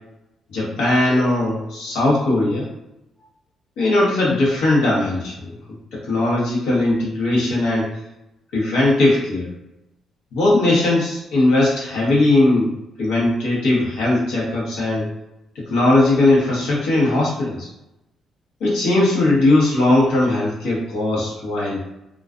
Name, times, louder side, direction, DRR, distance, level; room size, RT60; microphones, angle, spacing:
voice 1, 0.5-2.7 3.8-5.5 5.9-7.9 8.5-9.5 10.3-15.1 15.6-17.7 18.6-21.8, left 2 dB, 90° left, -5 dB, 0.9 m, -19 dB
2.3 x 2.2 x 2.4 m, 0.90 s
cardioid pair, 90°, 0 cm